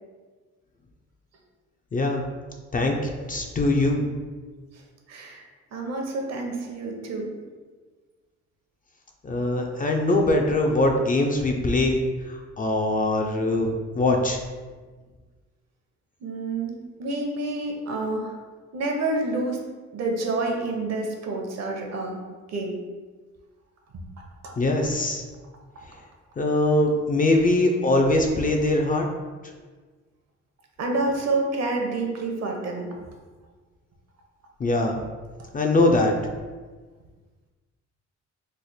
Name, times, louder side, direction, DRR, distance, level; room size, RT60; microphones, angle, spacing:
voice 1, 1.9-2.3 2.7-4.1 9.2-14.4 24.6-25.2 26.4-29.1 34.6-35.0 35.5-36.1, left 2 dB, 30° left, 2 dB, 0.4 m, -22 dB
voice 2, 5.1-5.4 5.7-7.3 16.2-18.4 18.7-19.6 19.9-22.2 22.5-22.8 23.9-24.0 24.4-24.5 30.8-33.0, right 2 dB, 60° right, 1 dB, 0.8 m, -28 dB
3.2 x 2.0 x 4.1 m, 1.4 s
cardioid pair, 90°, 30 cm